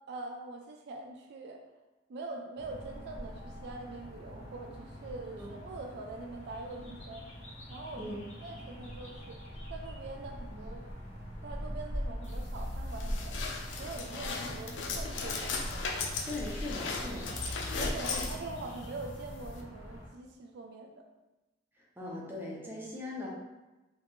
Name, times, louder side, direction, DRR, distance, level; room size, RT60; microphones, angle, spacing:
voice 1, 0.1-1.6 2.1-7.3 7.7-9.4 9.7-10.8 11.4-13.3 13.8-15.6 17.8-21.0, right 3 dB, 60° right, 2 dB, 0.3 m, -43 dB
sound 1, 2.6-20.1, equal, 35° left, 0.8 m, -42 dB
sound 2, 12.2-19.6, left 4 dB, 75° left, 0.4 m, -37 dB
voice 2, 16.3-17.3 18.1-18.3 21.8-23.3, left 2 dB, 10° right, -4 dB, 0.6 m, -40 dB
2.9 x 2.5 x 3.6 m, 1.1 s
head